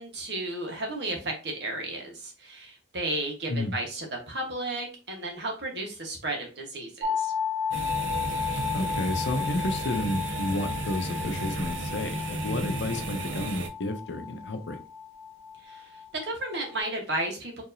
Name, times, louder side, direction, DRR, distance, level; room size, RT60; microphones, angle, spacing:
voice 1, 0.0-7.3 15.6-15.9 16.2-17.6, right 2 dB, 65° right, 2 dB, 1.2 m, -33 dB
sound 1, 7.0-16.8, left 7 dB, 30° right, 0.9 m, -34 dB
sound 2, 7.7-13.7, right 2 dB, 90° right, 0.6 m, -34 dB
voice 2, 8.7-14.8, left 1 dB, 70° left, 6 dB, 0.7 m, -31 dB
4.6 x 2.8 x 2.6 m, 0.33 s
head